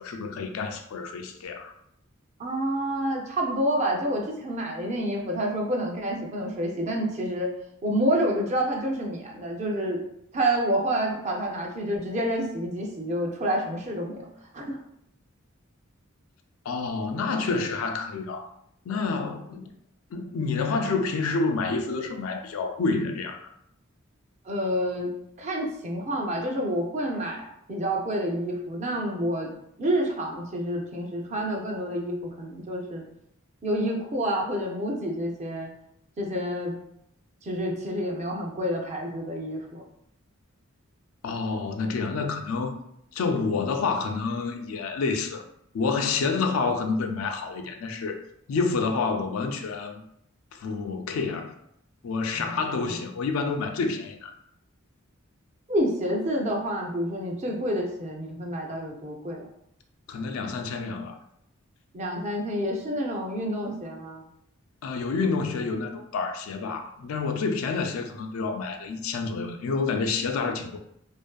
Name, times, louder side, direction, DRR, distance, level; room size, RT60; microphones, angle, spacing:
voice 1, 0.0-1.7 16.7-18.5 18.9-19.7 20.1-23.5 41.2-42.8 43.1-45.4 45.7-48.2 48.5-50.0 50.5-51.5 52.0-54.3 60.1-61.1 64.8-70.8, left 4 dB, 85° left, 5 dB, 0.4 m, -28 dB
voice 2, 2.4-7.5 7.8-10.0 10.3-14.3 14.5-14.8 24.4-25.1 25.4-29.5 29.8-33.0 33.6-35.7 36.2-36.8 37.4-39.8 52.3-53.0 55.7-59.5 61.9-64.3, equal, 35° right, 0 dB, 0.5 m, -28 dB
2.5 x 2.4 x 2.2 m, 0.75 s
head